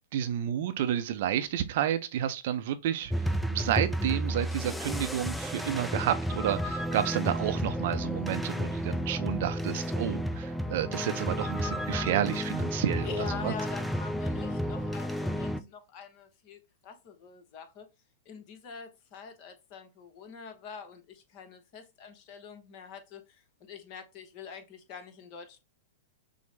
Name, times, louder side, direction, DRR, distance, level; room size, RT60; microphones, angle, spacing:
voice 1, 0.1-13.5, right 11 dB, 55° right, 0.5 m, -31 dB
sound 1, 3.1-15.6, equal, 5° left, 0.3 m, -32 dB
voice 2, 13.0-17.9 18.3-25.6, left 6 dB, 45° left, 0.9 m, -44 dB
6.0 x 2.1 x 3.3 m
figure-of-eight pair, 105°, 0 cm